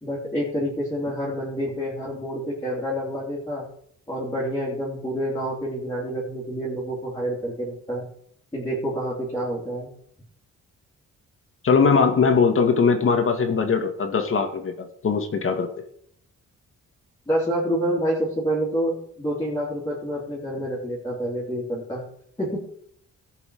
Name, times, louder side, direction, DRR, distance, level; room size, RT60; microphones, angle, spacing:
voice 1, 0.0-3.6 4.1-8.0 8.5-9.9 17.3-22.0 22.4-22.6, equal, 10° left, -6 dB, 3.3 m, -28 dB
voice 2, 11.6-15.7, left 5 dB, 45° left, 6 dB, 1.9 m, -20 dB
17.5 x 7.0 x 5.0 m, 0.67 s
wide cardioid pair, 165°, 31 cm